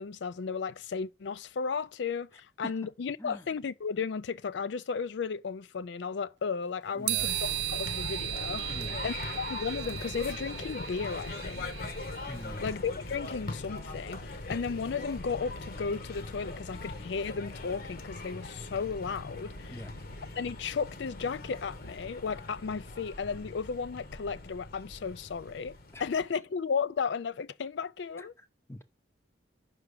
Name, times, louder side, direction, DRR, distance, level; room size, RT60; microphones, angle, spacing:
voice 1, 0.0-8.8 9.0-11.7 12.6-19.8 20.4-25.7 26.0-28.3, left 5 dB, 70° left, 0.4 m, -34 dB
voice 2, 6.9-7.3 8.6-9.0 12.3-12.6 19.7-19.9 25.9-26.0 28.2-28.8, left 1 dB, 15° left, 0.7 m, -43 dB
sound 1, 7.1-12.4, right 16 dB, 65° right, 0.3 m, -36 dB
sound 2, 7.2-26.3, left 2 dB, 50° left, 1.0 m, -41 dB
5.9 x 4.8 x 6.6 m
head